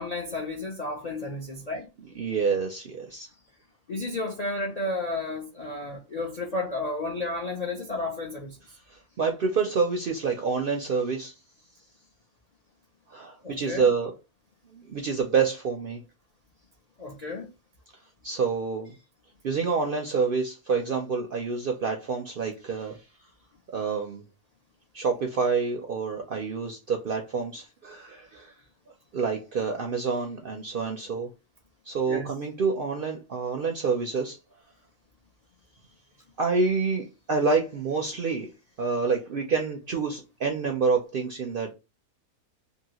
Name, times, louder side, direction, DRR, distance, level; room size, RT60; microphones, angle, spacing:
voice 1, 0.0-1.9 3.9-8.6 13.4-13.9 17.0-17.5 32.1-32.3, left 2 dB, 55° left, 0.4 m, -32 dB
voice 2, 2.2-3.3 8.9-11.3 13.1-14.1 14.7-16.0 18.2-19.0 19.4-23.0 23.7-24.2 24.9-28.5 29.1-31.3 31.9-34.4 36.4-38.5 38.8-41.7, right 5 dB, 65° right, 0.5 m, -27 dB
2.8 x 2.7 x 2.8 m
omnidirectional pair, 1.5 m